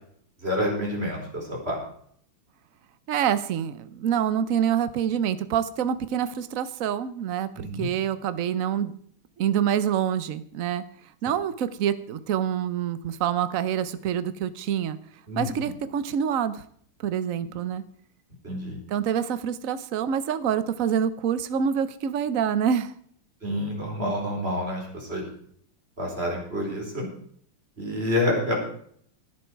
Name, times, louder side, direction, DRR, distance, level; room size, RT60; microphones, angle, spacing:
voice 1, 0.4-1.8 7.6-7.9 15.3-15.5 18.4-18.8 23.4-25.2 26.0-27.0 27.8-28.5, left 1 dB, 25° right, -1 dB, 5.0 m, -28 dB
voice 2, 3.1-8.9 9.4-10.8 11.2-15.0 15.4-16.6 17.0-17.8 18.9-22.9, right 9 dB, 55° right, 13 dB, 1.0 m, -26 dB
17.5 x 11.0 x 4.7 m, 0.62 s
omnidirectional pair, 2.3 m